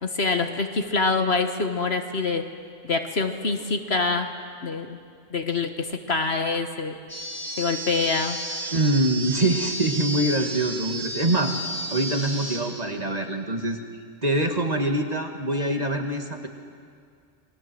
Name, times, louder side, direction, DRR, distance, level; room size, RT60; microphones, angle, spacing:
voice 1, 0.0-2.4 2.8-4.3 4.6-5.0 5.3-7.0 7.6-8.4, left 4 dB, 55° left, 5 dB, 1.6 m, -25 dB
sound 1, 7.1-12.6, right 1 dB, 60° right, 8.1 m, -32 dB
voice 2, 8.7-11.5 11.9-13.8 14.2-16.5, right 1 dB, 30° right, 3 dB, 1.9 m, -24 dB
28.0 x 21.0 x 7.8 m, 2.2 s
omnidirectional pair, 1.3 m